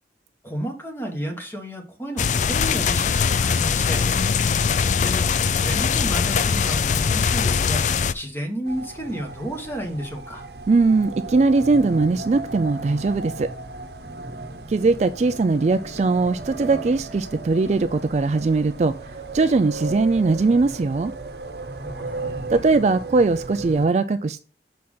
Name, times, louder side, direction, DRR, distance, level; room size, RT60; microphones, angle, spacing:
voice 1, 0.4-4.3 5.0-5.3 5.6-7.9 8.1-10.5 21.8-22.2, equal, 10° left, 4 dB, 1.4 m, -32 dB
sound 1, 2.2-8.1, left 6 dB, 45° left, 0.4 m, -21 dB
sound 2, 8.6-23.9, right 2 dB, 65° right, 0.9 m, -35 dB
voice 2, 10.7-13.5 14.7-18.9 19.3-21.1 22.5-24.4, right 3 dB, 40° right, 11 dB, 0.3 m, -20 dB
6.3 x 4.3 x 5.5 m, 0.36 s
head